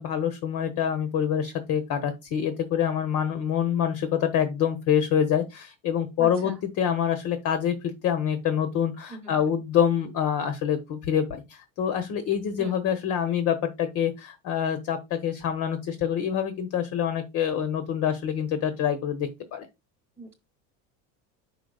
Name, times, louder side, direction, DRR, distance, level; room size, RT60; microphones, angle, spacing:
voice 1, 0.0-19.7, left 8 dB, 50° left, 11 dB, 1.2 m, -26 dB
voice 2, 6.2-6.6 9.1-9.5 12.6-12.8 20.2-20.4, right 1 dB, 5° right, -2 dB, 1.0 m, -39 dB
5.6 x 5.2 x 4.0 m, 0.24 s
supercardioid pair, 125°, 38 cm